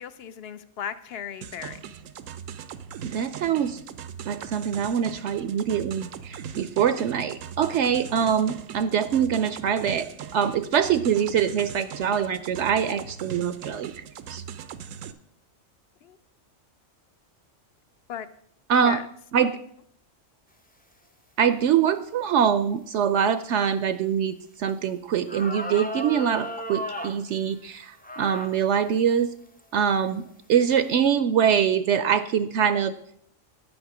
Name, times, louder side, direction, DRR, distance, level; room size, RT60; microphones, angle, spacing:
voice 1, 0.0-1.8 8.2-8.3 16.0-16.2 18.1-18.3 18.8-19.1, left 8 dB, 60° left, 13 dB, 0.8 m, -36 dB
sound 1, 1.4-15.1, right 8 dB, 90° right, 1.1 m, -40 dB
voice 2, 3.0-3.8 4.3-10.1 10.3-14.0 14.3-14.4 18.7-19.0 19.3-19.5 21.4-29.3 29.7-30.2 30.5-32.9, right 8 dB, 70° right, 12 dB, 0.8 m, -24 dB
sound 2, 24.7-24.8 25.3-27.2 28.0-28.6 29.2-29.3 30.0-30.3, equal, 10° left, 0.5 m, -34 dB
9.9 x 8.7 x 4.9 m, 0.67 s
omnidirectional pair, 1.3 m